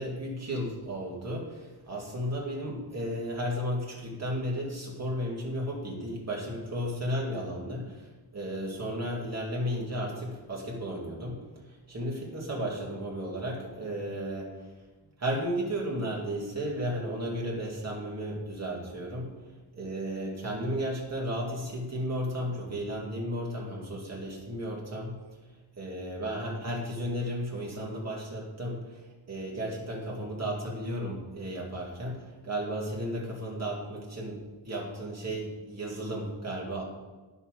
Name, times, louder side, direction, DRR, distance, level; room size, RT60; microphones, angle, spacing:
voice 1, 0.0-11.4 11.7-14.5 15.2-19.3 19.7-25.2 25.8-34.4 34.6-36.8, equal, 35° right, -3 dB, 2.5 m, -34 dB
9.9 x 5.7 x 6.5 m, 1.2 s
wide cardioid pair, 135°, 47 cm